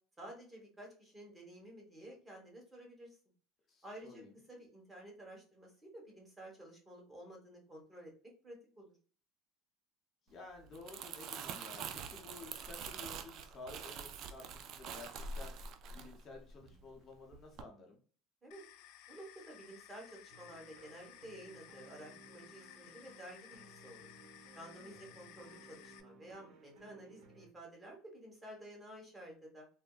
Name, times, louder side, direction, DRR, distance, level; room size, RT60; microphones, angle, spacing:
voice 1, 0.2-3.2 3.8-4.2 4.5-8.1 8.4-9.0 18.4-18.6 19.1-24.1 24.5-29.7, right 1 dB, 15° right, -1 dB, 1.1 m, -52 dB
voice 2, 3.7-4.3 10.3-18.0 24.8-25.2, left 3 dB, 35° left, 1 dB, 0.7 m, -53 dB
Crumpling crinkling, 10.6-17.0 17.3-17.6, right 5 dB, 50° right, 0.3 m, -45 dB
sound 1, 18.5-26.0, left 12 dB, 70° left, 0.3 m, -57 dB
sound 2, 20.3-27.5, right 3 dB, 70° right, 0.8 m, -60 dB
3.4 x 2.0 x 2.3 m, 0.41 s
cardioid pair, 130°, 0 cm